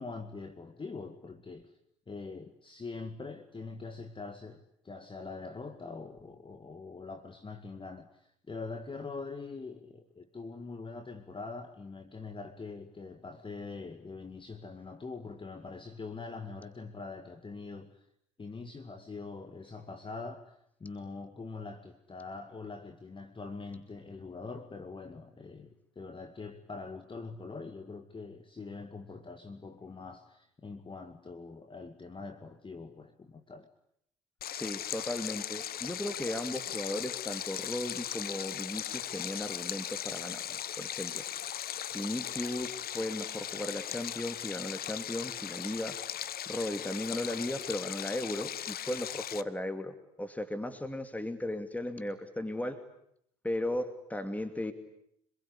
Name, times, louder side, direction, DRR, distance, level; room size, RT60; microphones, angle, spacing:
voice 1, 0.0-1.7 2.1-18.1 18.4-33.7, left 4 dB, 25° left, 2.1 m, -43 dB
Stream, 34.4-49.4, left 10 dB, 50° left, 1.1 m, -38 dB
voice 2, 34.5-41.2 41.9-45.9 46.5-52.8 53.4-54.7, left 1 dB, 5° left, 2.6 m, -36 dB
27.0 x 21.5 x 10.0 m
hypercardioid pair, 60°, 20 cm